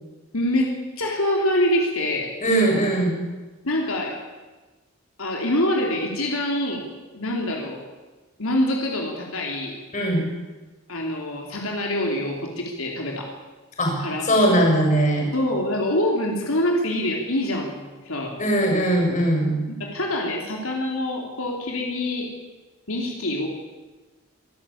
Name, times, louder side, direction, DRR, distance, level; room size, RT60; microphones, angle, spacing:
voice 1, 0.3-2.3 3.6-4.2 5.2-6.8 7.1-7.8 8.4-9.8 10.9-13.3 14.0-14.2 15.3-18.4 19.7-22.3 22.9-23.5, left 1 dB, 85° left, 0 dB, 3.4 m, -25 dB
voice 2, 2.4-3.2 9.9-10.3 13.8-15.3 18.4-19.6, right 1 dB, 35° left, 0 dB, 6.9 m, -20 dB
26.0 x 12.5 x 8.6 m, 1.2 s
head